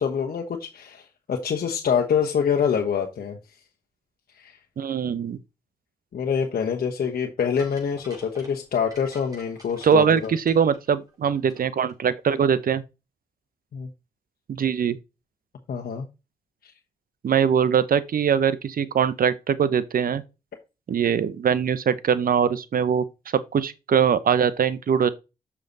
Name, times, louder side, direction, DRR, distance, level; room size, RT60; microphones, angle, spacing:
voice 1, 0.0-3.4 4.4-4.6 6.1-10.3 13.7-13.9 15.7-16.1, left 7 dB, 65° left, 1.1 m, -25 dB
voice 2, 4.8-5.4 9.8-12.8 14.5-15.0 17.2-20.2 20.9-23.0 23.5-25.1, right 7 dB, 65° right, 0.8 m, -22 dB
sound 1, 7.6-11.6 11.9-12.0, right 1 dB, 25° right, 4.5 m, -49 dB
6.8 x 5.7 x 3.9 m
supercardioid pair, 50°, 16 cm